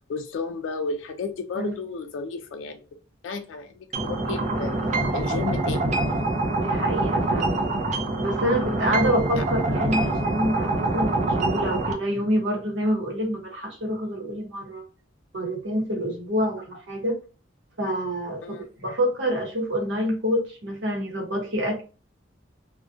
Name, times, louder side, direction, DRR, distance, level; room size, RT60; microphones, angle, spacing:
voice 1, 0.1-2.8 3.2-4.8 5.1-5.9 9.3-9.4 18.4-18.7, left 4 dB, 75° left, 7 dB, 0.3 m, -32 dB
sound 1, 3.9-11.9, right 2 dB, 40° right, 0.4 m, -25 dB
voice 2, 6.5-7.6 8.2-14.8 15.3-17.2 17.8-21.8, equal, 70° right, 1 dB, 0.8 m, -27 dB
2.4 x 2.1 x 2.5 m, 0.35 s
head